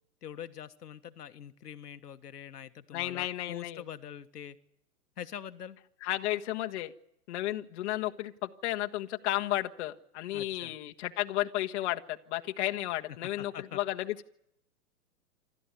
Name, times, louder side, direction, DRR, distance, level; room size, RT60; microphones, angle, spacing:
voice 1, 0.2-4.6 5.2-5.8 10.3-10.8 13.1-13.8, left 9 dB, 90° left, 9 dB, 1.5 m, -44 dB
voice 2, 2.9-3.8 6.0-6.9 7.3-12.0 12.3-14.1, left 15 dB, 45° left, 5 dB, 1.6 m, -33 dB
27.0 x 13.5 x 9.6 m, 0.78 s
hypercardioid pair, 140°, 46 cm